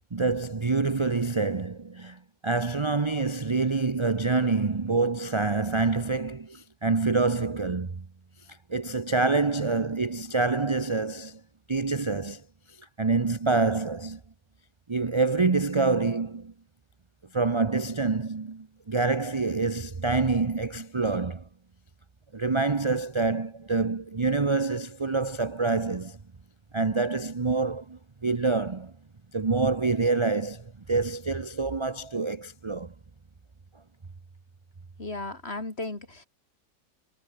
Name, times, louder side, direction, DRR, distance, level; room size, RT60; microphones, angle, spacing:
voice 1, 0.1-8.1 8.7-11.4 11.7-12.4 12.7-14.2 14.9-16.5 17.3-21.4 22.3-26.2 26.7-28.9 29.3-32.9, right 3 dB, 30° right, 0.5 m, -26 dB
voice 2, 35.0-36.3, left 2 dB, 35° left, 3.8 m, -35 dB
omnidirectional pair, 1.9 m